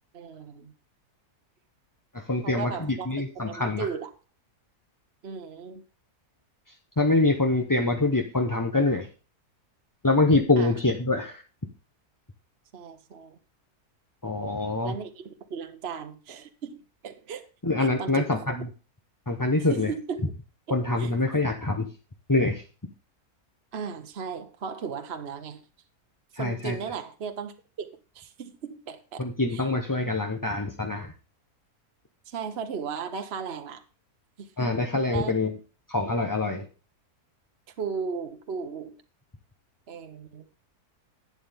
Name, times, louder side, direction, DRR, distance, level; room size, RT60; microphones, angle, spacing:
voice 1, 0.1-0.7 2.4-3.1 3.3-4.1 5.2-5.8 10.6-10.7 12.7-13.4 14.8-16.8 17.0-17.5 18.0-18.5 19.7-20.3 20.7-21.2 23.7-25.6 26.3-27.9 28.1-29.3 29.5-29.6 32.3-33.8 34.4-34.7 35.1-35.4 37.8-38.9 39.9-40.5, right 6 dB, 45° right, 1.1 m, -36 dB
voice 2, 2.1-3.9 7.0-9.1 10.0-11.4 14.2-14.9 17.6-18.7 19.3-19.9 20.7-21.9 22.3-22.6 26.3-26.7 29.2-31.1 34.6-35.5 35.9-36.7, left 2 dB, 15° left, 0.7 m, -25 dB
11.5 x 9.0 x 3.5 m
omnidirectional pair, 1.7 m